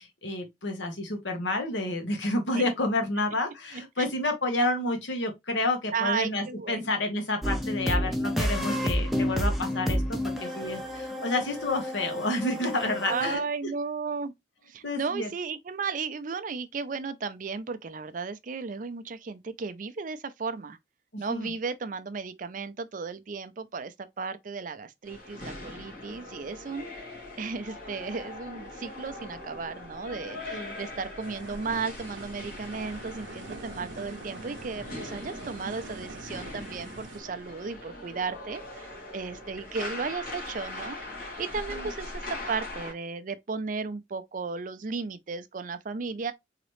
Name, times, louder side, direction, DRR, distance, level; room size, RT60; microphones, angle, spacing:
voice 1, 0.0-13.4 14.8-15.3 21.1-21.5 30.5-30.7 41.7-41.9, left 2 dB, 85° left, 1.2 m, -30 dB
voice 2, 3.7-4.1 5.9-6.9 13.1-14.3 14.6-20.8 21.2-46.3, right 4 dB, 45° right, 0.5 m, -35 dB
sound 1, 7.4-13.3, equal, ahead, 0.6 m, -30 dB
sound 2, 25.1-42.9, left 2 dB, 55° left, 2.1 m, -41 dB
sound 3, 31.2-37.2, right 3 dB, 85° right, 0.7 m, -44 dB
4.0 x 2.9 x 3.1 m
head